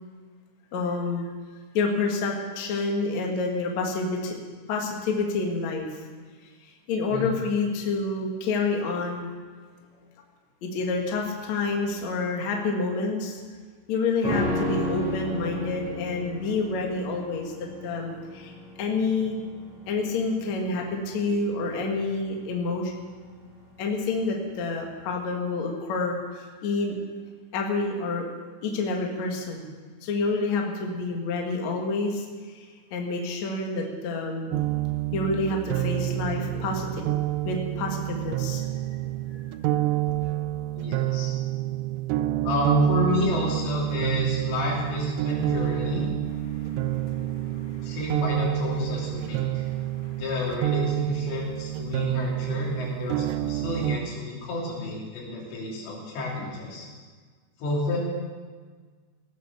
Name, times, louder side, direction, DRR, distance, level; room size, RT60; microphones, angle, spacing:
voice 1, 0.7-1.3 1.7-4.4 4.7-6.0 6.9-9.3 10.6-13.4 13.9-17.5 17.8-18.5 18.8-19.4 19.9-22.9 23.8-27.0 27.5-28.2 28.6-29.7 30.0-32.7 32.9-34.5 35.1-38.6 38.9-39.0 46.5-48.0 49.7-50.2, left 3 dB, 55° left, 1 dB, 2.2 m, -28 dB
sound 1, 14.2-23.6 23.9-24.0, left 1 dB, ahead, 5.3 m, -33 dB
sound 2, 34.5-54.0, right 15 dB, 85° right, 3.1 m, -28 dB
voice 2, 40.8-41.4 42.4-46.1 47.8-49.7 50.2-56.9 57.6-58.0, left 3 dB, 90° left, -4 dB, 5.8 m, -30 dB
18.0 x 8.5 x 6.8 m, 1.5 s
omnidirectional pair, 5.5 m